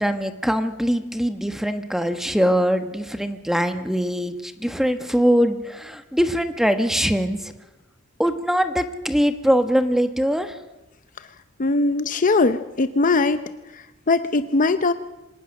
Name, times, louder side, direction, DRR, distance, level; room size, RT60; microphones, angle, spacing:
voice 1, 0.0-7.4 8.2-10.5, equal, ahead, 8 dB, 1.2 m, -22 dB
voice 2, 11.6-13.4 13.7-14.9, left 3 dB, 40° left, 11 dB, 0.7 m, -20 dB
25.5 x 18.5 x 6.5 m, 1.0 s
head